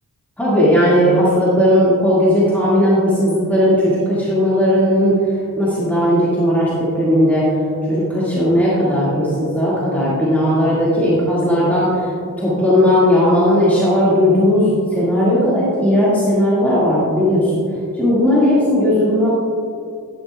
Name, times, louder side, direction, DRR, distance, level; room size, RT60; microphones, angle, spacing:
voice 1, 0.4-5.2 5.6-17.6 17.9-19.3, equal, 5° left, -9 dB, 1.9 m, -16 dB
11.0 x 10.0 x 2.3 m, 2.3 s
wide cardioid pair, 110°, 34 cm